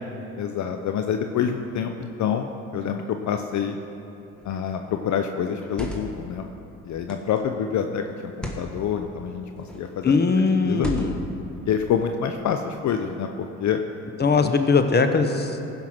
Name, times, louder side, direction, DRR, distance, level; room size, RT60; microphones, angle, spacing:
voice 1, 0.4-3.8 4.4-6.5 6.8-10.1 10.6-10.9 11.7-13.8 14.4-14.6, left 8 dB, 60° left, 6 dB, 0.7 m, -27 dB
sound 1, 4.4-4.7 5.5-6.3 7.1-7.4 8.3-8.7 9.6-10.0 10.7-11.4, right 1 dB, 5° left, 1.6 m, -35 dB
voice 2, 10.0-11.2 14.2-15.6, left 4 dB, 30° left, 7 dB, 1.0 m, -20 dB
15.0 x 5.7 x 6.0 m, 2.8 s
supercardioid pair, 70°, 33 cm